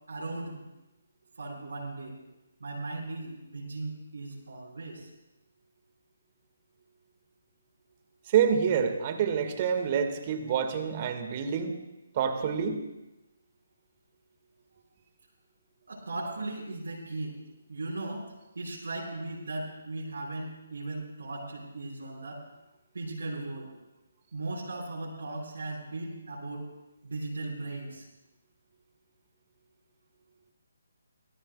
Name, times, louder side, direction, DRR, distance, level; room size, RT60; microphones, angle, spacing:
voice 1, 0.1-0.6 1.4-2.2 2.6-5.1 15.9-17.4 17.7-22.5 22.9-23.7 24.3-26.7 27.0-28.1, right 2 dB, 65° right, -6 dB, 5.0 m, -37 dB
voice 2, 8.3-11.7 12.2-12.8, right 7 dB, 30° right, 6 dB, 1.8 m, -27 dB
26.0 x 18.5 x 2.3 m, 0.98 s
figure-of-eight pair, 140°, 0 cm